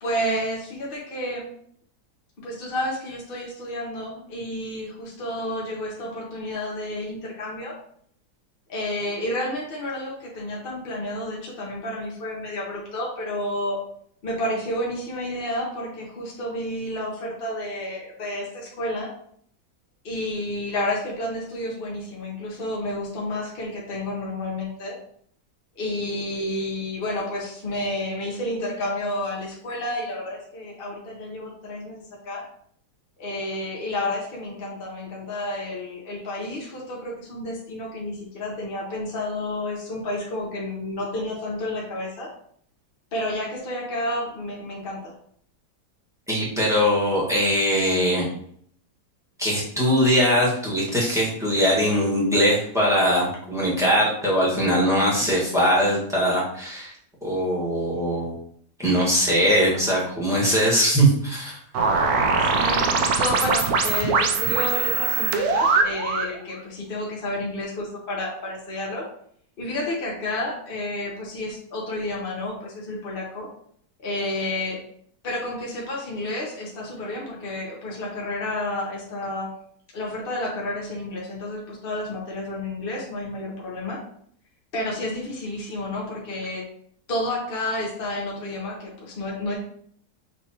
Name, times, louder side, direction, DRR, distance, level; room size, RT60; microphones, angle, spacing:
voice 1, 0.0-1.5 2.4-7.7 8.7-13.8 14.2-19.1 20.0-24.9 25.8-32.4 33.2-42.3 43.1-45.1 62.4-69.0 69.6-73.5 74.0-74.8 75.2-79.5 79.9-84.0 84.7-86.6 87.1-89.6, left 1 dB, 40° left, -4 dB, 0.9 m, -30 dB
voice 2, 46.3-48.3 49.4-56.9 57.2-58.3 58.8-61.6, equal, ahead, -6 dB, 1.1 m, -21 dB
sound 1, 61.7-66.3, right 4 dB, 70° right, 0.9 m, -22 dB
6.0 x 3.0 x 2.8 m, 0.64 s
omnidirectional pair, 1.9 m